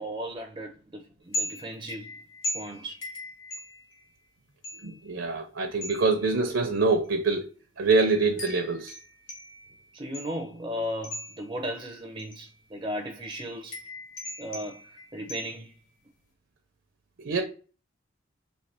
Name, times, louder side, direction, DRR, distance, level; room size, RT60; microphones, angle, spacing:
voice 1, 0.0-2.1 2.5-2.9 9.9-13.8 14.4-14.8 15.1-15.7, equal, 20° right, 0.5 m, -36 dB
sound 1, 1.3-4.2 4.6-5.1 5.8-6.3 7.0-7.2 8.4-10.5 11.0-11.6 12.2-12.6 13.3-15.8, left 1 dB, 85° left, 1.1 m, -39 dB
voice 2, 4.8-7.4 7.8-8.9 17.2-17.4, right 3 dB, 70° right, 0.6 m, -25 dB
3.2 x 3.0 x 4.3 m
head